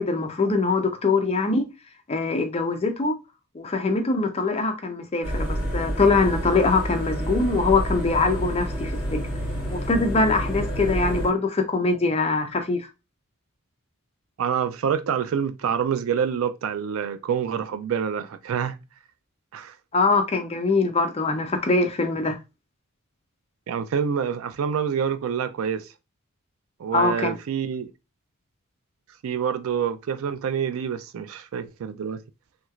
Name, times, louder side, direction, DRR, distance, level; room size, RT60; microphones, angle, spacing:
voice 1, 0.0-1.7 2.1-3.1 3.5-9.2 9.7-12.9 19.9-22.4 26.9-27.4, left 3 dB, 30° left, 0.5 m, -23 dB
sound 1, 5.2-11.3, equal, 5° right, 1.6 m, -28 dB
voice 2, 14.4-18.8 19.5-19.7 23.7-25.9 26.8-27.9 29.2-32.2, right 7 dB, 65° right, 0.3 m, -27 dB
3.1 x 3.1 x 2.3 m
head